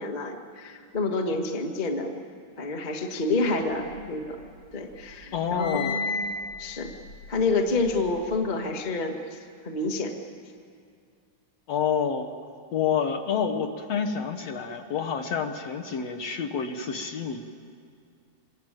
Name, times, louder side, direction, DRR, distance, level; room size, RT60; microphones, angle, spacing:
voice 1, 0.0-2.1 2.6-4.4 4.7-6.3 6.6-6.9 7.3-9.4 9.6-10.2, left 3 dB, 30° left, 3 dB, 0.8 m, -28 dB
sound 1, 3.6-4.6 4.9-8.3, left 3 dB, 85° left, 7.6 m, -35 dB
voice 2, 5.3-6.0 11.7-12.3 12.7-17.5, left 7 dB, 60° left, 6 dB, 2.0 m, -28 dB
25.5 x 21.5 x 9.1 m, 2.3 s
omnidirectional pair, 3.8 m